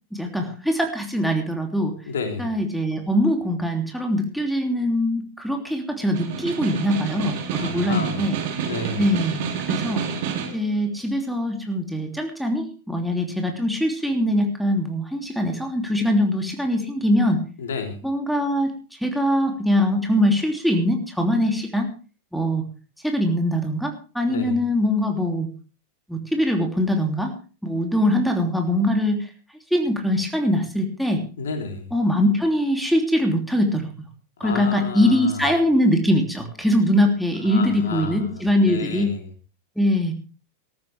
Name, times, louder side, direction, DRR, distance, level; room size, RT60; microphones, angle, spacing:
voice 1, 0.1-1.9 2.4-7.3 7.6-8.4 9.0-10.0 10.5-17.4 18.0-18.7 19.0-21.9 22.3-22.6 23.0-25.5 26.1-27.3 27.6-29.2 29.7-31.2 31.9-33.9 34.4-39.1 39.8-40.1, equal, ahead, 4 dB, 3.1 m, -22 dB
voice 2, 2.1-2.5 7.5-8.3 8.6-9.1 17.6-18.0 24.3-24.6 31.4-31.9 34.4-35.6 37.4-39.3, left 4 dB, 65° left, 5 dB, 3.3 m, -31 dB
Snare drum, 6.0-10.6, right 7 dB, 50° right, 3.4 m, -29 dB
20.0 x 14.0 x 3.4 m, 0.34 s
figure-of-eight pair, 90°, 0 cm